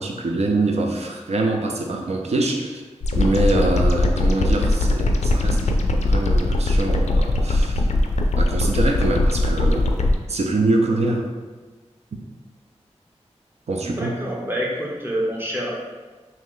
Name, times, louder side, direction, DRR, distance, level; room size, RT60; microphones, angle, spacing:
voice 1, 0.0-2.8 3.1-5.6 6.0-7.9 8.4-9.9 10.3-11.3 12.1-12.2 13.7-14.2, right 2 dB, 65° right, 2 dB, 0.5 m, -24 dB
sound 1, 3.0-10.1, left 2 dB, 70° left, 0.4 m, -20 dB
voice 2, 13.8-15.7, right 1 dB, 20° right, -4 dB, 1.0 m, -27 dB
3.1 x 2.8 x 3.8 m, 1.3 s
wide cardioid pair, 65°, 12 cm